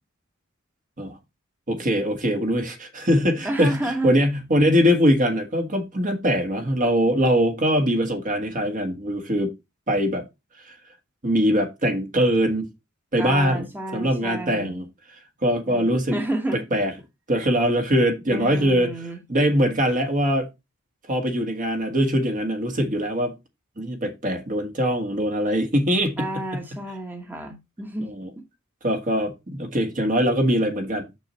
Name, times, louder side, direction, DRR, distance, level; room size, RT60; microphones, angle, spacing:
voice 1, 1.7-9.5 9.9-10.2 11.2-12.7 13.1-13.7 13.9-14.9 15.4-16.2 16.7-16.9 17.3-18.9 19.3-20.5 21.1-23.3 23.8-26.6 28.0-28.3 28.8-31.1, equal, 40° right, 1.6 m, -22 dB
voice 2, 3.4-4.1 13.2-14.7 15.7-16.6 18.3-19.2 26.2-28.1, right 1 dB, 10° right, 1.3 m, -30 dB
6.5 x 6.5 x 4.2 m
head